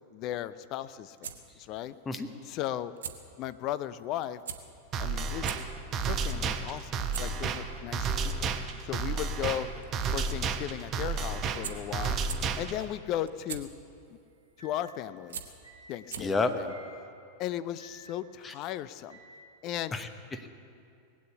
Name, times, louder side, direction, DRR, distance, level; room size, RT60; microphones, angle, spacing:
voice 1, 0.1-1.9 2.5-2.9 3.4-4.4 5.0-5.5 6.0-6.9 7.2-8.5 8.8-9.7 10.1-12.2 12.6-13.7 14.6-15.4 15.9-16.7 17.4-19.2 19.6-19.9, left 12 dB, 40° left, 15 dB, 0.5 m, -36 dB
sound 1, 0.7-16.5, right 8 dB, 65° right, 1.0 m, -46 dB
sound 2, 4.9-12.9, right 5 dB, 30° right, 0.9 m, -32 dB
sound 3, 14.6-14.9 15.6-16.0 16.7-17.0 17.8-18.1 19.1-19.4, right 1 dB, 80° left, 5.3 m, -52 dB
voice 2, 16.2-16.5 18.4-18.5 19.9-20.5, left 3 dB, 15° left, 8 dB, 1.0 m, -30 dB
19.5 x 8.5 x 8.3 m, 2.5 s
figure-of-eight pair, 90°, 0 cm